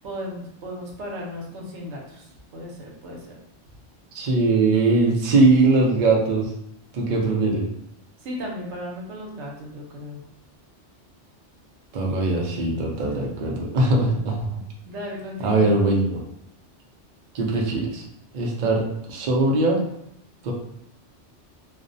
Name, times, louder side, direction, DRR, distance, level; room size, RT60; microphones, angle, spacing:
voice 1, 0.0-3.4 8.2-10.2 13.0-13.3 14.9-15.8, left 1 dB, 75° right, -1 dB, 0.9 m, -35 dB
voice 2, 4.1-6.5 6.9-7.7 11.9-14.4 15.4-16.2 17.3-18.0 18.3-19.8 20.4-20.5, right 2 dB, 55° right, -1 dB, 0.5 m, -21 dB
2.4 x 2.0 x 2.5 m, 0.75 s
omnidirectional pair, 1.2 m